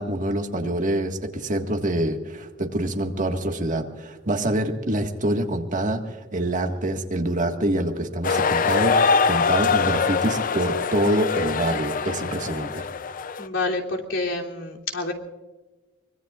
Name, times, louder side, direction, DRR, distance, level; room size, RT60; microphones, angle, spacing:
voice 1, 0.0-12.9, right 1 dB, 45° right, 4 dB, 1.8 m, -26 dB
sound 1, 8.2-13.5, left 5 dB, 45° left, 0.5 m, -23 dB
voice 2, 13.4-15.1, left 2 dB, 80° left, -1 dB, 3.0 m, -28 dB
24.5 x 22.5 x 2.5 m, 1.2 s
head